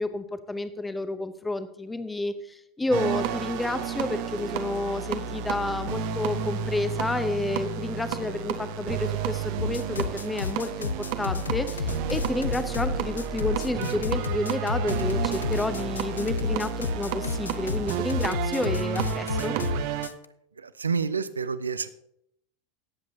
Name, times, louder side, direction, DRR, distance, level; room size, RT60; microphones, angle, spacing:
voice 1, 0.0-2.3 2.8-19.5, left 2 dB, 10° left, 11 dB, 0.8 m, -30 dB
sound 1, 2.9-20.1, right 8 dB, 50° right, 0.9 m, -31 dB
sound 2, 9.6-20.3, left 5 dB, 75° left, 0.4 m, -31 dB
voice 2, 20.6-21.9, right 5 dB, 80° right, 15 dB, 0.5 m, -29 dB
17.5 x 7.8 x 2.8 m, 0.75 s
figure-of-eight pair, 80°, 0 cm